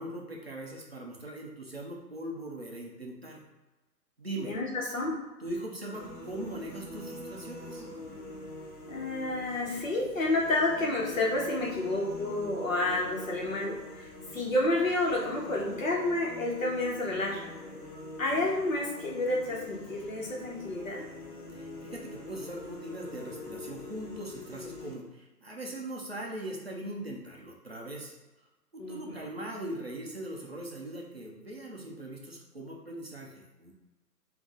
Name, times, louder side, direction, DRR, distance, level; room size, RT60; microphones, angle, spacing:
voice 1, 0.0-3.4 4.2-4.5 5.4-7.9 21.5-28.1 28.7-33.7, right 1 dB, 40° right, -1 dB, 0.5 m, -40 dB
voice 2, 4.4-5.2 8.9-17.5 18.2-21.1 28.8-29.2, left 2 dB, 50° left, -2 dB, 1.2 m, -30 dB
sound 1, 5.9-24.9, left 1 dB, 75° left, 1.3 m, -44 dB
4.5 x 2.7 x 3.7 m, 1.1 s
hypercardioid pair, 175°, 50 cm